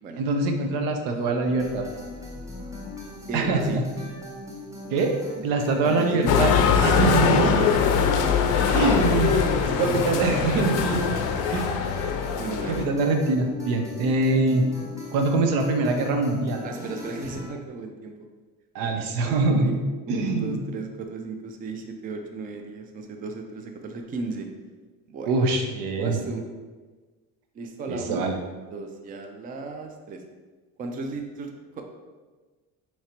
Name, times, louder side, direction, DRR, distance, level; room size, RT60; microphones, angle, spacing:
voice 1, 0.2-1.8 3.3-3.8 4.9-5.1 5.4-6.5 6.8-7.6 8.7-9.4 9.8-11.1 11.5-11.8 12.7-14.6 15.1-16.6 18.7-19.7 20.1-20.6 25.3-26.2 27.9-28.4, right 3 dB, 85° right, 4 dB, 0.7 m, -24 dB
sound 1, 1.4-17.5, left 2 dB, 10° right, 0.8 m, -39 dB
voice 2, 3.3-3.8 5.8-6.3 6.8-9.1 9.6-10.0 10.3-10.8 12.4-12.8 16.6-18.1 18.8-18.9 19.2-19.8 20.1-24.5 25.1-25.3 25.9-26.4 27.5-30.2 30.8-32.0, right 3 dB, 25° right, 4 dB, 0.4 m, -35 dB
sound 2, 6.3-12.8, left 7 dB, 70° left, 0.5 m, -22 dB
4.5 x 2.9 x 2.9 m, 1.3 s
cardioid pair, 120°, 33 cm